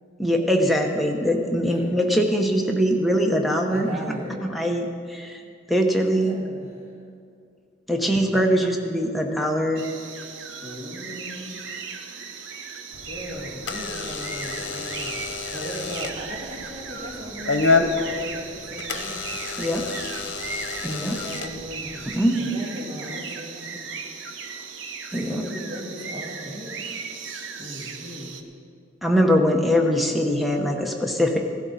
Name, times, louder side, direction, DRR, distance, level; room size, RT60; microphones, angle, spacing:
voice 1, 0.2-3.9 4.4-5.4 5.7-6.4 7.9-9.8 19.6-19.9 20.8-21.1 22.1-22.4 25.1-25.4 29.0-31.4, equal, ahead, 2 dB, 0.9 m, -22 dB
voice 2, 3.7-4.4 6.2-6.9 7.9-8.7 10.6-11.6 13.0-19.2 20.7-23.9 25.3-26.8 27.6-28.4, equal, 35° right, -4 dB, 2.2 m, -37 dB
sound 1, 9.8-28.4, right 5 dB, 75° right, 0.9 m, -37 dB
Door / Alarm, 12.9-22.2, left 4 dB, 80° left, 0.9 m, -29 dB
16.5 x 11.5 x 4.1 m, 2.3 s
head